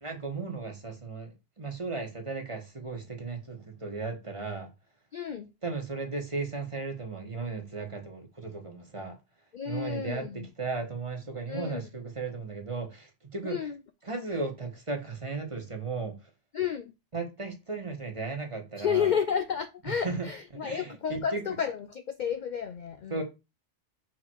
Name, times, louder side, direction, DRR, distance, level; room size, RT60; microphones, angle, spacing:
voice 1, 0.0-4.7 5.6-9.1 9.6-13.7 14.0-16.1 17.1-19.2 19.9-20.3 20.6-21.4 23.1-23.2, right 3 dB, 25° right, 1.3 m, -35 dB
voice 2, 5.1-5.5 9.5-10.5 11.5-11.8 13.4-13.8 16.5-16.9 18.8-23.2, left 7 dB, 55° left, 0.5 m, -31 dB
6.0 x 3.7 x 4.5 m
omnidirectional pair, 1.2 m